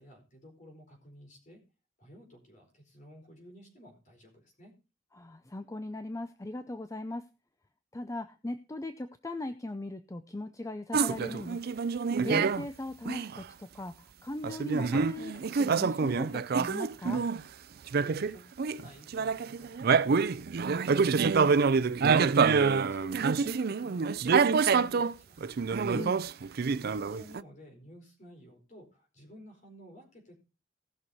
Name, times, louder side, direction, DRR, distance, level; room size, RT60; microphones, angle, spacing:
voice 1, 0.0-1.6 2.0-4.7 17.7-22.5 22.8-25.5 26.6-30.4, equal, 40° left, 2 dB, 4.6 m, -53 dB
voice 2, 5.1-7.2 7.9-11.6 12.2-14.0 14.2-17.2 25.9-26.2, left 2 dB, 15° left, 10 dB, 0.6 m, -39 dB
sound 1, 10.9-12.7 13.1-13.4 14.4-17.4 17.9-18.9 19.1-25.1 25.4-27.4, right 5 dB, 55° right, 0.5 m, -27 dB
18.0 x 6.3 x 4.2 m, 0.32 s
head